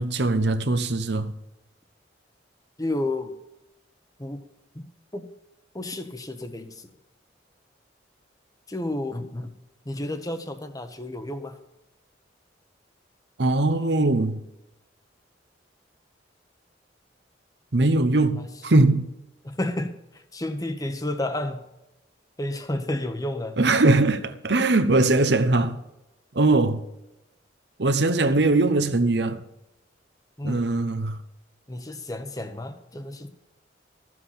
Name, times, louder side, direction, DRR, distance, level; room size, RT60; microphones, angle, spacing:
voice 1, 0.0-1.3 13.4-14.4 17.7-19.1 23.6-25.8 26.3-26.8 27.8-29.4 30.4-31.2, right 2 dB, 65° right, 0.9 m, -21 dB
voice 2, 2.8-3.3 4.2-4.4 4.7-4.8 5.1-5.2 5.7-6.9 8.7-9.5 9.8-11.6 18.3-18.5 19.4-21.6 22.4-23.6 30.4-30.7 31.7-33.3, left 1 dB, 20° left, 1.0 m, -31 dB
14.0 x 7.7 x 5.8 m
head